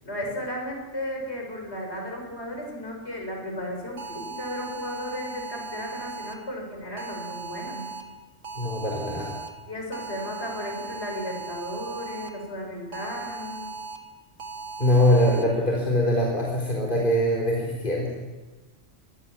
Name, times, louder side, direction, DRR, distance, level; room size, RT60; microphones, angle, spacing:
voice 1, 0.0-8.0 9.7-13.7, left 1 dB, 60° left, 1 dB, 6.9 m, -34 dB
sound 1, 4.0-6.3 7.0-8.0 8.4-9.5 9.9-12.3 12.9-14.0 14.4-15.4, right 4 dB, 85° right, 2.2 m, -38 dB
voice 2, 8.5-9.3 14.8-18.1, left 1 dB, 40° left, -3 dB, 4.1 m, -22 dB
24.0 x 20.5 x 7.3 m, 1.2 s
omnidirectional pair, 1.3 m